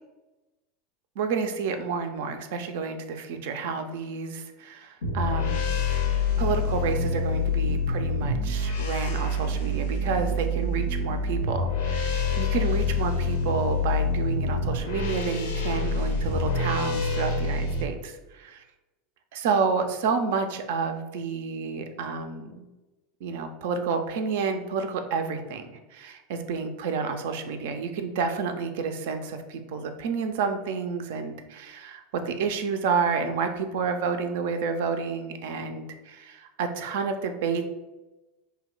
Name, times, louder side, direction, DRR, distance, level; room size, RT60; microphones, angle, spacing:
voice 1, 1.2-5.7 6.4-18.6 19.3-22.7 23.2-37.6, right 5 dB, 60° right, 7 dB, 0.3 m, -30 dB
sound 1, 5.0-17.8, left 3 dB, 70° left, 0.5 m, -26 dB
2.7 x 2.1 x 3.7 m, 1.1 s
figure-of-eight pair, 80°, 0 cm